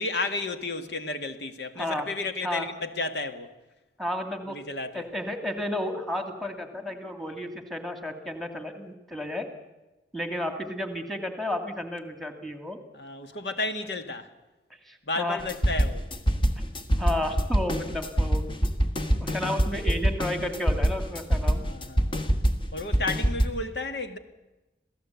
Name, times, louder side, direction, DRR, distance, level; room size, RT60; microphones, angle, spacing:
voice 1, 0.0-3.5 4.5-5.0 12.9-14.3 15.1-16.1 21.6-22.2 22.7-24.2, left 3 dB, 75° left, 1.8 m, -32 dB
voice 2, 4.0-4.6 4.9-9.5 10.1-12.8 14.9-15.4 17.0-18.7 19.2-21.6, left 1 dB, ahead, 2.3 m, -32 dB
sound 1, 15.4-23.5, equal, 30° left, 1.5 m, -25 dB
27.5 x 17.0 x 8.2 m
head